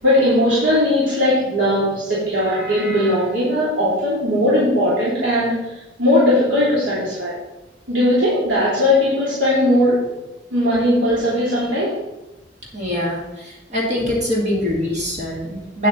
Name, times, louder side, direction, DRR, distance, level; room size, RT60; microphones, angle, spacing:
voice 1, 0.0-5.7 6.0-7.4 7.9-10.1 10.5-11.9, left 1 dB, 90° right, -9 dB, 3.0 m, -18 dB
voice 2, 12.7-15.9, left 1 dB, 40° right, -3 dB, 2.1 m, -23 dB
9.0 x 7.9 x 4.1 m, 1.0 s
head